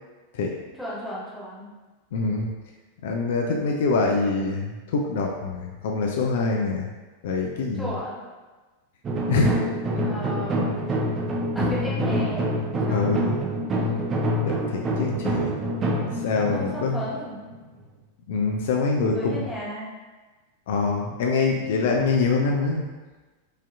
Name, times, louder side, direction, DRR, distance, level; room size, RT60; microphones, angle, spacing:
voice 1, 0.7-1.7 6.4-6.8 7.7-8.2 10.0-10.7 11.5-12.4 12.8-13.2 16.5-17.4 19.1-20.0, equal, ahead, -8 dB, 1.2 m, -34 dB
voice 2, 2.1-2.5 3.0-6.9 7.2-7.9 9.3-10.0 12.9-13.3 14.4-15.5 16.1-17.0 18.3-19.4 20.7-22.9, left 3 dB, 55° left, 0 dB, 0.4 m, -25 dB
sound 1, 9.0-17.8, equal, 25° right, 0.5 m, -26 dB
4.8 x 2.8 x 2.3 m, 1.3 s
figure-of-eight pair, 90°, 0 cm